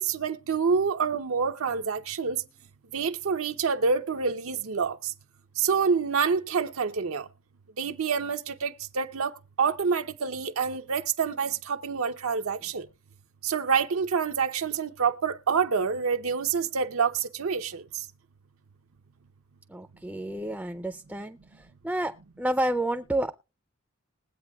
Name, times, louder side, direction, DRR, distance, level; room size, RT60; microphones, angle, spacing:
voice 1, 0.0-2.4 2.9-5.0 5.6-7.3 7.8-9.3 9.6-12.8 13.4-17.8, right 5 dB, 85° right, 0.7 m, -27 dB
voice 2, 19.7-23.3, right 1 dB, 5° right, 0.4 m, -30 dB
21.0 x 8.2 x 2.3 m
head